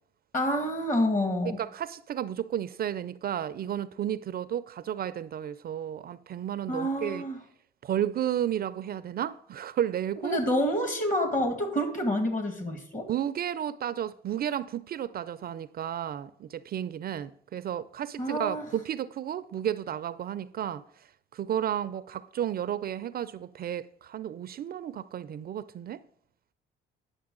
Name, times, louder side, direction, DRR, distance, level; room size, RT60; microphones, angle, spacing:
voice 1, 0.3-1.6 6.7-7.4 10.2-13.1 18.2-18.6, equal, 40° left, 1.9 m, -28 dB
voice 2, 1.6-7.2 7.8-10.4 13.1-20.8 21.3-26.0, right 10 dB, 50° right, 0.4 m, -32 dB
9.5 x 6.6 x 3.7 m
cardioid pair, 90°, 20 cm